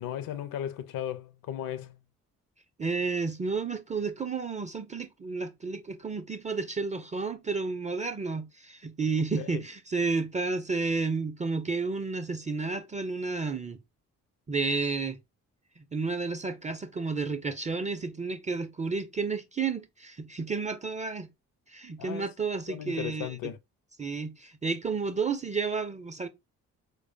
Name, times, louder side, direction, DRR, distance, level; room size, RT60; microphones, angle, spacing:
voice 1, 0.0-2.0 9.4-9.6 22.0-22.3 22.7-23.6, left 10 dB, 50° left, 0.6 m, -36 dB
voice 2, 2.8-13.8 14.5-15.2 15.8-21.3 21.7-23.5 24.0-26.3, right 4 dB, 15° right, 0.4 m, -31 dB
4.6 x 2.3 x 2.5 m
figure-of-eight pair, 40°, 43 cm